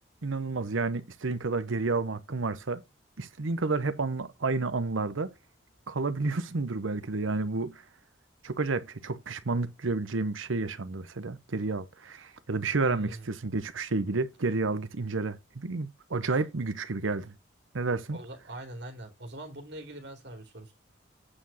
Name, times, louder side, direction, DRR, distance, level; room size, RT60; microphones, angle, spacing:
voice 1, 0.2-2.8 3.2-5.3 5.9-7.8 8.4-17.3 17.7-18.2, right 3 dB, 85° right, 0.8 m, -30 dB
voice 2, 12.8-13.3 18.1-20.7, right 1 dB, 60° right, 2.9 m, -42 dB
8.8 x 4.8 x 7.0 m
head